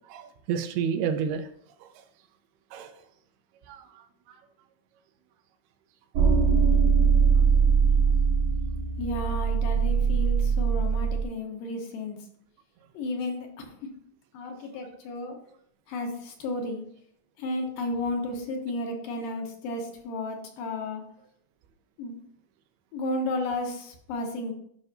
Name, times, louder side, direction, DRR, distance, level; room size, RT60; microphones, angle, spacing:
voice 1, 0.1-1.5 1.8-1.9 2.7-3.0 3.7-4.0 4.3-4.4 9.3-9.4, right 7 dB, 85° right, 6 dB, 2.7 m, -30 dB
sound 1, 6.1-11.2, right 6 dB, 70° right, 2.8 m, -22 dB
voice 2, 9.0-12.2 12.9-13.7 14.3-15.4 15.9-16.8 17.4-21.0 22.0-22.1 22.9-24.5, left 2 dB, 70° left, 2 dB, 2.6 m, -33 dB
12.0 x 5.4 x 2.8 m, 0.67 s
omnidirectional pair, 4.4 m